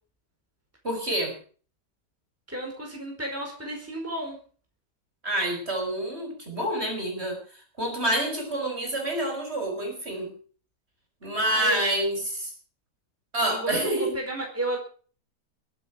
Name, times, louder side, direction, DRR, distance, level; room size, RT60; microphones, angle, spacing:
voice 1, 0.8-1.3 5.2-7.4 7.8-10.3 11.2-12.5 13.3-14.2, right 1 dB, 35° right, 3 dB, 6.2 m, -27 dB
voice 2, 2.5-4.4 11.4-11.8 13.4-14.8, right 1 dB, 10° right, 1 dB, 4.6 m, -32 dB
22.0 x 9.6 x 5.2 m, 0.42 s
omnidirectional pair, 1.8 m